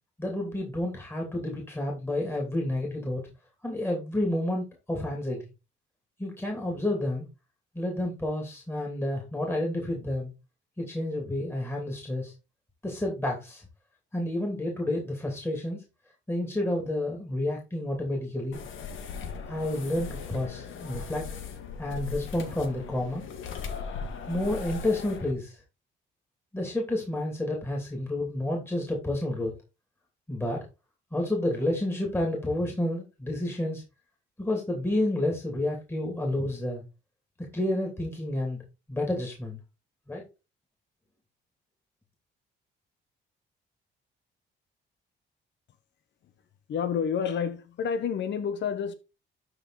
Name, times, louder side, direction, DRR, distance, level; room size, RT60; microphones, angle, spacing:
voice 1, 0.2-3.2 3.6-5.5 6.2-7.3 7.7-10.3 10.8-12.3 12.8-13.6 14.1-15.8 16.3-18.6 19.5-21.3 21.8-23.2 24.3-25.6 26.5-29.5 30.3-30.6 31.1-33.8 34.4-36.8 37.5-38.6 38.9-39.6 40.1-40.2, left 1 dB, 10° left, 2.9 m, -30 dB
sound 1, 18.5-25.3, left 6 dB, 80° left, 1.5 m, -38 dB
voice 2, 46.7-49.0, left 7 dB, 65° left, 0.9 m, -29 dB
11.5 x 4.0 x 4.2 m
cardioid pair, 90°, 20 cm